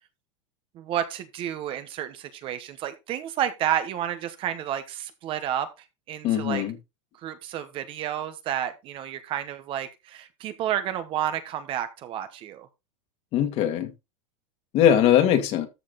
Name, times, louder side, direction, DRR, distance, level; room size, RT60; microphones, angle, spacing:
voice 1, 0.7-5.7 6.1-6.6 7.2-12.7, right 10 dB, 35° right, 1.1 m, -30 dB
voice 2, 6.2-6.7 13.3-13.9 14.7-15.7, left 10 dB, 40° left, 1.9 m, -21 dB
13.5 x 4.7 x 3.9 m
supercardioid pair, 155°, 16 cm